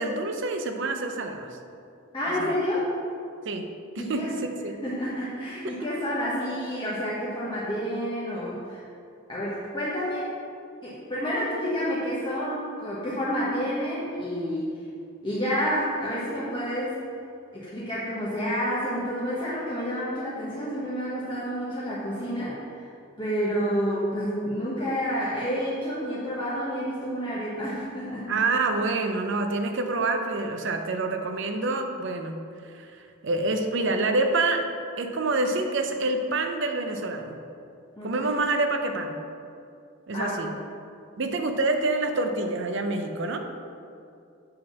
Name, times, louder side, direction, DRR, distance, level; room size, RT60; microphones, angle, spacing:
voice 1, 0.0-1.6 2.4-2.5 3.5-3.7 4.0-4.7 5.6-5.7 28.3-34.7 35.0-37.4 38.0-39.2 40.1-40.5 41.2-43.4, right 2 dB, 55° right, 5 dB, 0.6 m, -27 dB
voice 2, 2.1-2.9 4.0-4.3 4.8-8.8 9.3-10.3 10.8-14.7 15.2-17.0 17.5-22.9 23.2-28.4 38.0-38.3 40.1-40.5, equal, 20° left, -9 dB, 1.1 m, -29 dB
7.8 x 3.7 x 5.9 m, 2.5 s
head